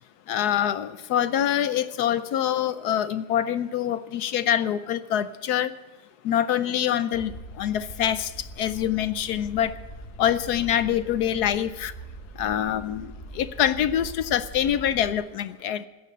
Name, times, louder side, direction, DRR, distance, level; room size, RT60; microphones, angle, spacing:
voice 1, 0.3-5.7 6.2-9.8 10.2-11.9 12.3-15.9, left 10 dB, 70° left, 14 dB, 1.1 m, -25 dB
sound 1, 7.1-15.1, right 1 dB, 35° left, 6.5 m, -42 dB
14.5 x 9.8 x 8.1 m, 1.2 s
omnidirectional pair, 1.9 m